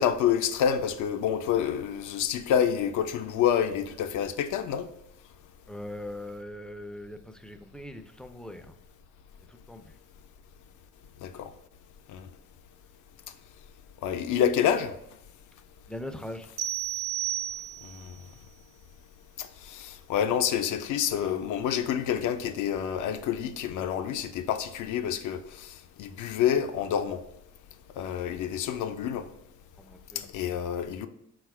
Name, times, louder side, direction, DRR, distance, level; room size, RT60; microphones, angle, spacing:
voice 1, 0.0-4.9 11.2-11.5 12.1-12.3 14.0-14.9 17.8-18.2 19.4-27.2 28.0-29.3 30.2-31.1, left 9 dB, 80° left, 0.5 m, -28 dB
voice 2, 5.7-8.8 9.5-9.9 15.9-16.5 29.8-30.3, left 1 dB, 5° left, 0.3 m, -41 dB
sound 1, 16.6-18.1, right 12 dB, 65° right, 0.5 m, -32 dB
4.0 x 2.3 x 4.6 m
cardioid pair, 90°, 30 cm